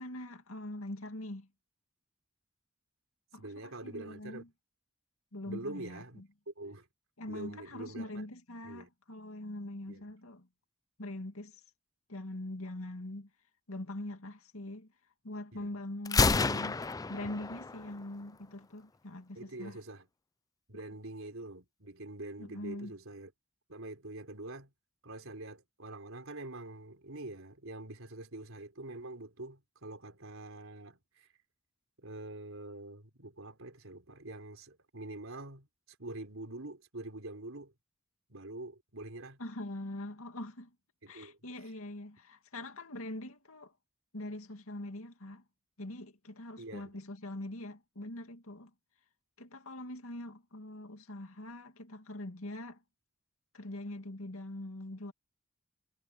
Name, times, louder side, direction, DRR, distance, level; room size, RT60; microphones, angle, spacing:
voice 1, 0.0-1.5 3.3-4.5 5.3-6.3 7.2-10.5 11.0-11.6 12.1-13.3 13.7-14.9 15.2-16.8 17.1-19.8 20.7-20.8 22.4-23.0 39.4-40.7 41.1-43.7 44.1-45.4 45.8-48.7 49.4-52.8 53.5-55.1, left 1 dB, 90° left, 2.3 m, -43 dB
voice 2, 3.3-4.5 5.4-6.9 7.3-8.1 8.6-8.9 9.9-10.0 15.5-15.7 19.3-20.1 20.7-23.3 23.7-24.7 25.0-31.3 32.0-35.7 36.0-37.7 38.3-39.4 41.0-41.4 46.6-46.9, right 2 dB, 70° right, 4.6 m, -45 dB
Gunshot gunfire, 16.1-18.0, left 4 dB, 15° left, 0.4 m, -29 dB
head